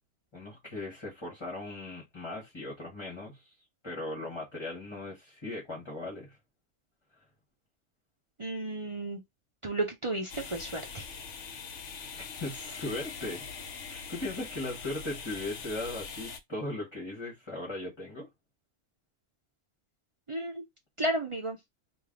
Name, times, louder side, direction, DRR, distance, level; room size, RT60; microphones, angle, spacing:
voice 1, 0.3-3.4 3.8-6.4 12.2-13.4 13.9-18.3, left 2 dB, 20° left, 1.2 m, -38 dB
voice 2, 8.4-9.2 9.6-11.0 20.3-20.6 21.0-21.6, right 1 dB, 50° right, 0.3 m, -33 dB
sound 1, 10.3-16.4, left 5 dB, 60° left, 0.9 m, -42 dB
3.2 x 2.6 x 3.7 m
omnidirectional pair, 1.6 m